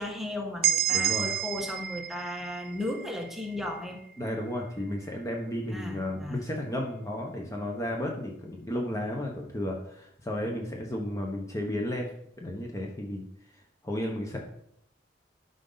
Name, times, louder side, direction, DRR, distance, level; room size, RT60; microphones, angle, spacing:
voice 1, 0.0-4.0 5.7-6.4, left 1 dB, ahead, 1 dB, 1.2 m, -35 dB
sound 1, 0.6-4.4, right 10 dB, 55° right, 0.5 m, -30 dB
voice 2, 0.9-1.3 4.2-13.2 13.8-14.4, left 1 dB, 15° left, 0 dB, 1.0 m, -33 dB
12.0 x 5.3 x 4.0 m, 0.73 s
head